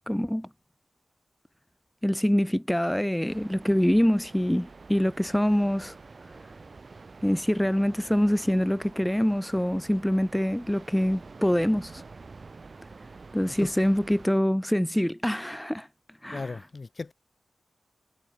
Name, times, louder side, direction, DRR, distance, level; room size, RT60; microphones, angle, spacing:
voice 1, 0.1-0.5 2.0-5.9 7.2-12.0 13.3-15.9 16.2-16.6, equal, 5° left, 0.9 m, -25 dB
sound 1, 3.3-14.3, right 4 dB, 40° right, 6.6 m, -47 dB
voice 2, 16.3-17.1, left 3 dB, 40° left, 1.6 m, -36 dB
wide cardioid pair, 125°, 0 cm